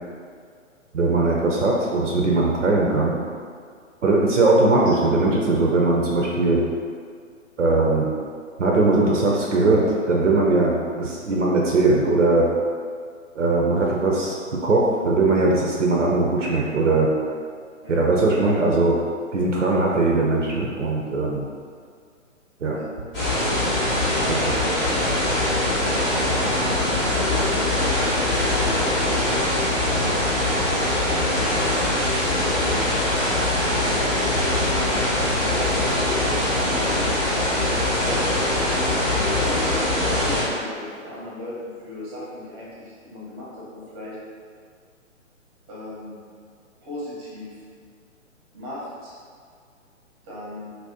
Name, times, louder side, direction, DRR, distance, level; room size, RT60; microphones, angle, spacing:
voice 1, 0.9-3.2 4.0-6.6 7.6-8.1 8.6-12.5 13.3-17.1 17.9-19.0 19.3-21.5 22.6-22.8 24.3-24.4, right 2 dB, 65° right, -3 dB, 0.6 m, -20 dB
sound 1, 23.1-40.4, left 1 dB, 20° left, 0.8 m, -22 dB
voice 2, 24.3-25.4 25.6-28.9 29.8-30.4 31.1-32.1 34.4-35.1 35.4-37.0 37.6-38.2 39.0-44.2 45.7-46.2 46.8-47.6 48.5-49.1 50.2-50.7, left 1 dB, 20° right, -8 dB, 0.7 m, -37 dB
2.7 x 2.0 x 3.5 m, 2.1 s
figure-of-eight pair, 125°, 39 cm